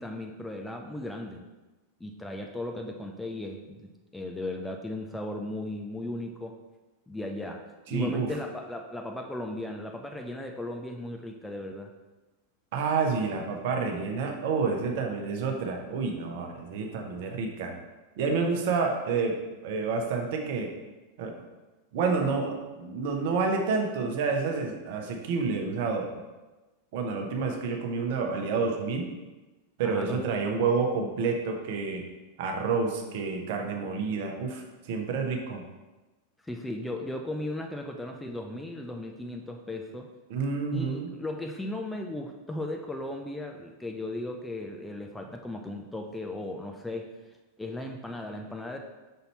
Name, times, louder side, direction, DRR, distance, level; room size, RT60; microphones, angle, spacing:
voice 1, 0.0-1.4 2.0-6.6 7.1-7.6 7.9-11.9 29.8-30.2 36.4-40.1 40.7-47.1 47.6-48.8, left 1 dB, 5° left, 3 dB, 0.5 m, -36 dB
voice 2, 7.9-8.3 12.7-17.7 18.2-19.4 19.6-20.7 21.2-21.3 21.9-26.1 26.9-29.1 29.8-32.0 32.4-35.6 40.3-41.1, right 4 dB, 50° right, 2 dB, 0.9 m, -29 dB
5.5 x 4.0 x 4.4 m, 1.1 s
figure-of-eight pair, 90°, 0 cm